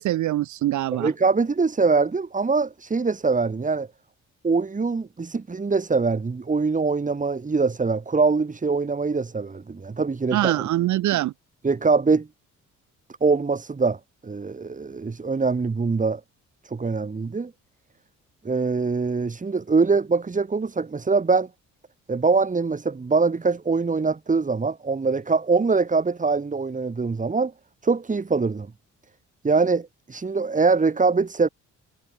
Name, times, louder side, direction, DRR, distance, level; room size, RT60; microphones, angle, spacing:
voice 1, 0.0-1.1 10.3-11.3, right 14 dB, 75° right, 0.9 m, -23 dB
voice 2, 0.9-3.9 4.4-10.7 11.6-12.3 13.2-16.2 16.6-17.5 18.4-21.5 22.1-27.5 27.8-28.7 29.4-31.5, right 4 dB, 25° right, 2.4 m, -23 dB
cardioid pair, 90°, 30 cm